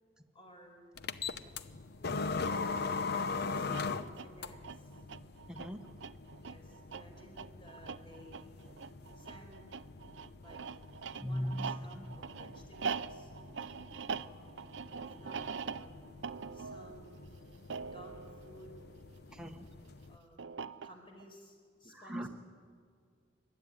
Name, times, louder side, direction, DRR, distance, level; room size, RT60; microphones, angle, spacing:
voice 1, 0.3-0.9 3.0-5.0 6.4-8.5 9.1-9.8 10.4-10.6 11.1-13.3 14.1-16.1 16.5-17.3 17.6-18.8 20.1-22.3, left 1 dB, 30° left, 1 dB, 5.0 m, -56 dB
sound 1, 1.0-20.2, left 4 dB, 60° left, 0.8 m, -42 dB
sound 2, 3.6-19.4 20.4-21.2, right 5 dB, 70° right, 0.6 m, -43 dB
voice 2, 5.5-5.8 11.2-12.2 19.3-19.7 21.8-22.3, equal, 5° right, 2 dB, 1.2 m, -39 dB
28.0 x 13.0 x 9.7 m, 2.1 s
head